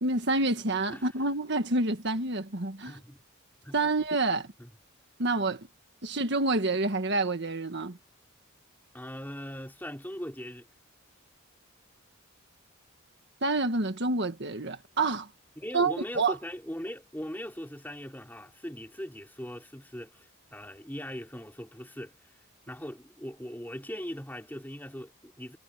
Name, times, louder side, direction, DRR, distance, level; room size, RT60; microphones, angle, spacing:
voice 1, 0.0-3.0 3.7-4.5 5.2-5.6 6.0-8.0 13.4-15.3 15.7-16.3, right 2 dB, 55° right, 1.6 m, -28 dB
voice 2, 2.8-3.2 3.6-3.8 4.6-4.7 8.9-10.7 15.6-22.1 22.7-25.6, equal, 10° left, 4.0 m, -40 dB
head